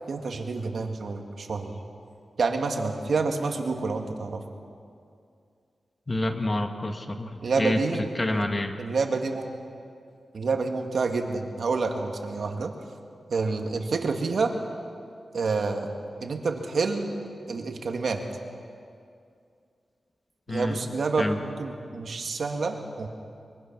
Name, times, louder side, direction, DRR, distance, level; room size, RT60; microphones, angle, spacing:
voice 1, 0.1-1.8 2.4-4.4 7.4-8.5 8.8-9.5 10.3-12.7 13.3-14.5 15.3-15.9 16.2-17.2 17.5-18.2 20.5-23.1, right 4 dB, 70° right, 4 dB, 2.0 m, -28 dB
voice 2, 6.1-7.8 8.2-8.7 20.5-20.8 21.2-21.4, left 1 dB, 30° left, 5 dB, 1.8 m, -28 dB
23.5 x 23.0 x 6.1 m, 2.4 s
wide cardioid pair, 85°, 0 cm